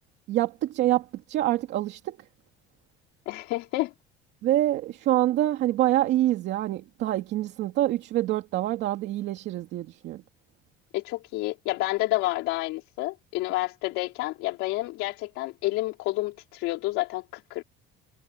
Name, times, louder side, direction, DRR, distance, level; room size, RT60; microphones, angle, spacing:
voice 1, 0.3-2.2 4.4-10.2, right 14 dB, 60° right, 2.6 m, -26 dB
voice 2, 3.3-3.9 10.9-17.6, left 19 dB, 90° left, 3.7 m, -29 dB
cardioid pair, 170°, 21 cm